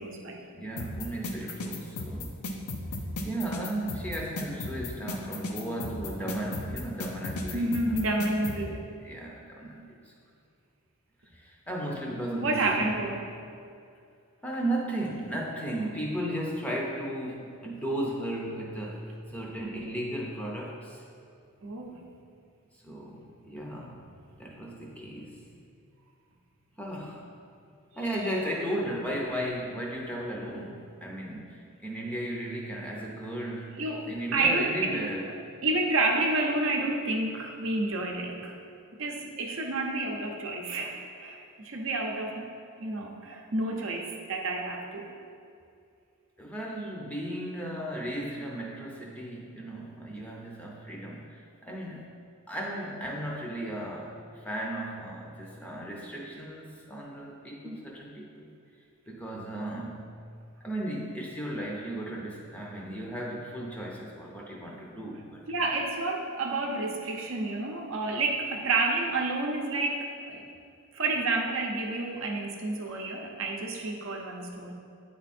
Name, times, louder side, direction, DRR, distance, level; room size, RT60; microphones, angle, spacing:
voice 1, 0.0-0.4 7.5-8.8 12.3-13.2 21.6-22.0 33.8-35.0 35.3-38.6 39.0-42.5 42.8-45.1 57.6-57.8 65.5-70.4 70.9-74.7, right 2 dB, 60° right, 1 dB, 0.7 m, -30 dB
voice 2, 0.5-2.3 3.2-7.8 9.0-9.8 11.3-13.1 14.4-21.0 22.8-24.0 24.4-25.4 26.8-27.3 28.0-33.8 34.1-35.3 46.4-52.2 52.5-58.5 59.1-60.1 60.6-65.4, right 1 dB, 5° left, -3 dB, 0.6 m, -35 dB
sound 1, 0.8-8.6, left 2 dB, 85° left, 0.7 m, -35 dB
8.6 x 3.6 x 4.2 m, 2.4 s
head